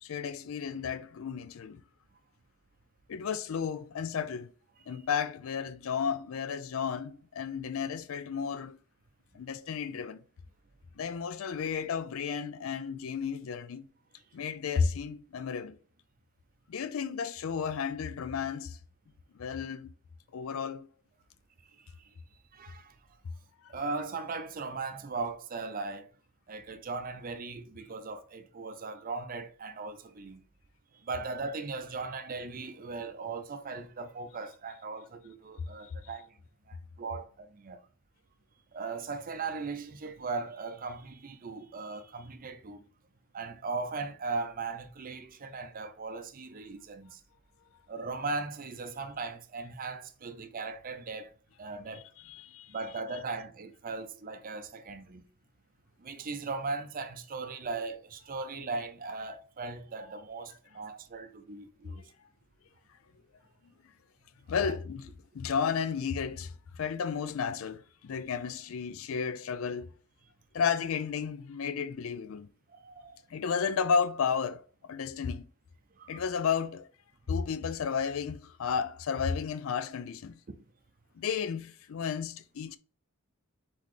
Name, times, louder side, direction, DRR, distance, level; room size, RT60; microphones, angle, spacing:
voice 1, 0.0-1.8 3.1-4.5 4.9-8.8 9.3-10.2 11.0-13.9 14.3-15.8 16.7-18.8 19.3-19.9 20.3-20.9 23.6-23.7 35.8-35.9 52.2-52.7 64.5-65.1 65.3-69.9 70.5-72.5 73.3-75.5 76.1-76.9 77.3-80.4 81.1-82.8, left 6 dB, 65° left, 0.4 m, -33 dB
voice 2, 21.7-22.2 22.5-23.0 23.7-26.1 26.5-30.4 30.9-36.4 36.7-37.8 38.7-42.9 43.3-47.2 47.9-51.3 51.6-52.1 52.7-55.2 56.0-62.1 64.6-64.7 72.7-73.2 75.9-76.2 80.5-80.6, right 4 dB, 40° right, 0.5 m, -38 dB
4.2 x 4.0 x 3.2 m
head